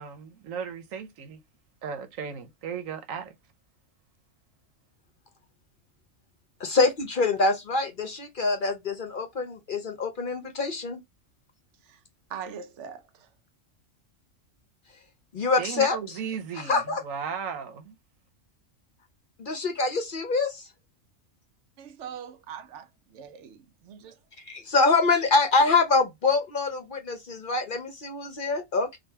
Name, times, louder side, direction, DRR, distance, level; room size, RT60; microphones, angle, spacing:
voice 1, 0.0-1.4 1.8-3.3 15.6-18.0, right 7 dB, 90° right, 1.2 m, -36 dB
voice 2, 6.6-11.0 15.3-16.0 16.5-17.0 19.4-20.7 24.4-29.0, left 3 dB, 50° left, 0.8 m, -25 dB
voice 3, 12.3-13.3 21.8-24.2, right 7 dB, 70° right, 0.9 m, -42 dB
3.8 x 2.3 x 4.4 m
omnidirectional pair, 1.4 m